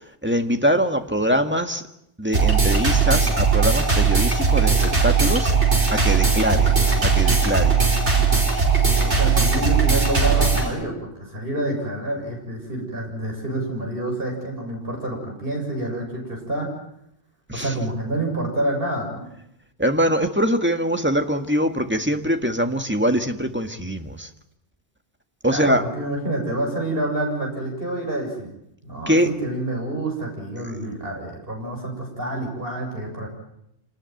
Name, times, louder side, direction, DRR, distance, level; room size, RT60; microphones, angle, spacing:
voice 1, 0.2-1.8 2.2-5.5 5.9-6.7 7.0-7.8 17.5-17.7 19.8-24.3 25.4-25.8 29.1-29.3, equal, 10° right, 5 dB, 1.7 m, -23 dB
sound 1, 2.3-10.7, right 5 dB, 75° right, 5.2 m, -19 dB
voice 2, 9.0-16.7 17.5-19.3 25.5-28.5 28.8-33.3, right 1 dB, 55° right, 1 dB, 7.4 m, -28 dB
27.0 x 19.5 x 9.3 m, 0.78 s
omnidirectional pair, 1.2 m